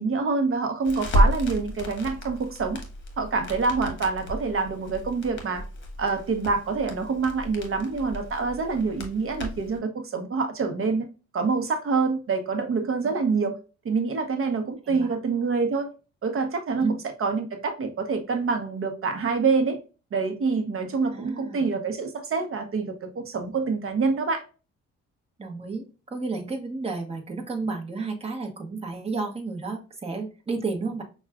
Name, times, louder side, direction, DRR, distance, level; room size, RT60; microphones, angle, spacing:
voice 1, 0.0-2.8 3.2-5.6 6.0-11.1 11.3-13.6 13.8-15.9 16.2-19.8 20.1-24.4, right 4 dB, 45° right, 0.8 m, -26 dB
Crackle, 0.8-9.8, equal, 40° left, 1.2 m, -31 dB
voice 2, 14.9-15.2 16.8-16.9 21.1-21.6 25.4-31.0, right 4 dB, 20° right, 1.0 m, -32 dB
5.8 x 2.3 x 2.3 m
cardioid pair, 90°, 30 cm